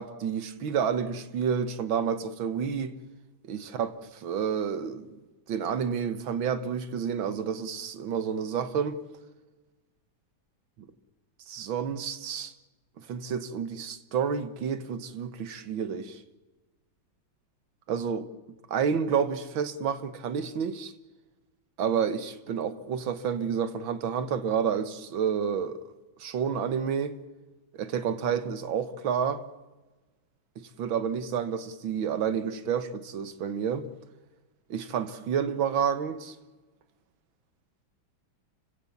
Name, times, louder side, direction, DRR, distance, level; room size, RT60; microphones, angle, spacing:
voice 1, 0.0-2.9 3.4-5.2 5.5-9.0 11.5-12.5 13.0-16.2 17.9-18.3 18.7-20.9 21.8-25.8 26.2-27.2 27.7-29.4 30.6-33.9 34.7-36.4, right 7 dB, 75° right, 2.0 m, -30 dB
29.0 x 16.5 x 7.2 m
omnidirectional pair, 2.2 m